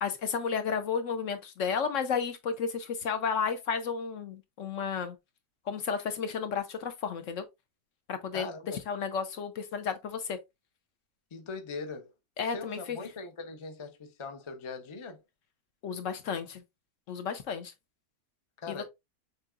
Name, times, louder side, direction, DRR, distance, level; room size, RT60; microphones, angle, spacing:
voice 1, 0.0-5.2 5.7-7.4 8.1-10.4 12.4-13.0 15.8-16.6 17.1-17.7 18.7-18.8, left 6 dB, 65° left, 0.9 m, -32 dB
voice 2, 8.3-8.8 11.3-12.1 12.5-15.2 18.6-18.8, left 4 dB, 40° left, 0.4 m, -40 dB
6.7 x 3.0 x 2.4 m
omnidirectional pair, 1.6 m